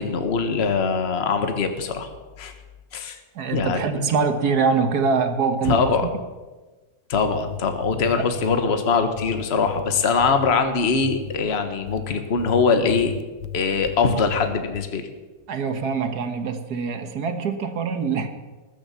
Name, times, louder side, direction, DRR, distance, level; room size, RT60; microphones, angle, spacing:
voice 1, 0.0-2.1 2.4-2.5 2.9-3.2 3.5-3.9 5.6-6.0 7.1-13.1 13.5-15.0, left 5 dB, 40° left, 7 dB, 1.4 m, -22 dB
voice 2, 3.3-6.0 15.5-18.3, right 5 dB, 60° right, 8 dB, 1.7 m, -24 dB
sound 1, 7.2-8.6 9.2-10.6 11.0-11.4 11.9-14.0 14.3-14.9, left 11 dB, 70° left, 1.1 m, -35 dB
20.0 x 7.4 x 6.9 m, 1.2 s
omnidirectional pair, 1.9 m